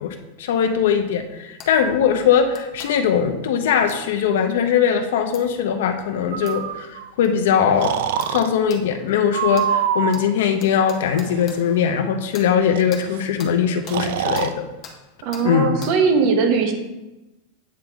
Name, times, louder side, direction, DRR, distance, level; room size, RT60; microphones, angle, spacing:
voice 1, 0.0-7.9 8.3-14.7 15.4-15.7, left 7 dB, 65° left, 6 dB, 0.6 m, -20 dB
sound 1, 1.6-1.7 2.5-2.9 3.9-4.0 5.3-5.4 6.5-6.6 7.2-7.3 8.2-8.4 8.7-8.8 9.5-9.7 10.1-10.2 10.6-11.6 12.3-12.5 12.9-13.0 13.4-13.5 13.9-14.0 14.3-14.5 14.8-15.0 15.3-15.5 15.8-15.9, left 6 dB, 25° left, 0.7 m, -40 dB
Breathing, 6.3-7.1 7.8-8.5 9.3-10.3 11.2-11.6 12.8-12.9 13.1-13.2 13.9-14.5, right 9 dB, 60° right, 0.4 m, -25 dB
voice 2, 15.2-16.7, right 5 dB, 40° right, 5 dB, 0.9 m, -19 dB
8.6 x 3.6 x 3.5 m, 1.0 s
supercardioid pair, 175°, 0 cm